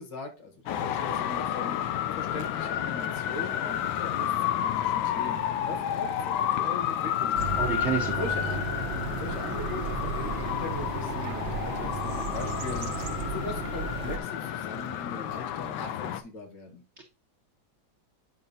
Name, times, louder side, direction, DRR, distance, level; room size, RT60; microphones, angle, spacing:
voice 1, 0.0-7.5 8.1-8.7 9.1-16.8, left 3 dB, 65° left, 4 dB, 1.9 m, -40 dB
Traffic noise roadway noise, 0.7-16.2, left 10 dB, 80° left, 1.3 m, -31 dB
sound 1, 7.3-14.8, equal, 45° left, 0.6 m, -45 dB
sound 2, 7.4-14.2, right 5 dB, 80° right, 1.4 m, -35 dB
voice 2, 7.6-8.2, right 6 dB, 60° right, 2 dB, 0.7 m, -29 dB
8.8 x 5.5 x 2.7 m, 0.32 s
omnidirectional pair, 2.1 m